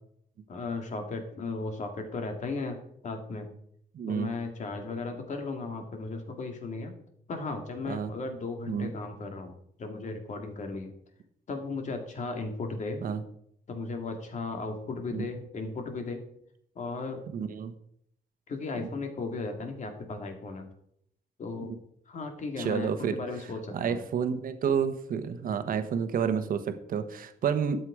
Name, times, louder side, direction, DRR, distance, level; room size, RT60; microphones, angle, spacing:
voice 1, 0.5-2.8 3.0-3.5 4.1-6.9 7.3-9.5 9.8-10.9 11.5-13.0 13.7-16.2 16.8-17.2 18.5-20.7 21.4-21.7 22.1-24.0, left 3 dB, 50° left, 5 dB, 2.1 m, -36 dB
voice 2, 3.9-4.3 7.8-8.1 8.7-8.9 13.0-13.2 15.1-15.3 17.3-17.7 18.8-18.9 22.6-23.2 23.7-27.9, right 7 dB, 60° right, 9 dB, 1.1 m, -30 dB
12.5 x 7.9 x 4.9 m, 0.69 s
wide cardioid pair, 155°, 16 cm